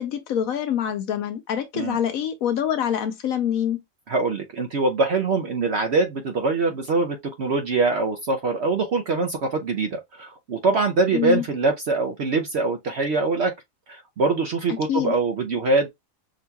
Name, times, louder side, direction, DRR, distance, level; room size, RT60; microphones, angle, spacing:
voice 1, 0.0-3.8 11.1-11.4 14.9-15.1, left 9 dB, 70° left, 1.0 m, -25 dB
voice 2, 4.1-13.5 13.9-15.9, right 3 dB, 60° right, 0.7 m, -23 dB
6.1 x 2.9 x 2.2 m
omnidirectional pair, 1.7 m